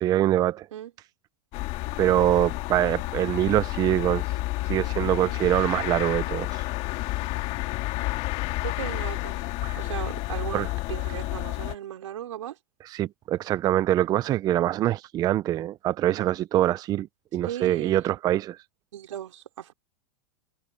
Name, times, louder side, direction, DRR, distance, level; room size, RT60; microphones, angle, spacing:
voice 1, 0.0-0.7 2.0-4.2 4.7-6.6 9.6-9.8 10.5-10.7 12.8-17.1 17.3-18.6, right 13 dB, 25° right, 0.5 m, -24 dB
sound 1, 1.5-11.8, left 20 dB, 40° left, 2.3 m, -30 dB
voice 2, 8.6-9.4 9.8-12.6 17.4-18.0 18.9-19.7, right 11 dB, 80° right, 4.2 m, -36 dB
hypercardioid pair, 135°, 16 cm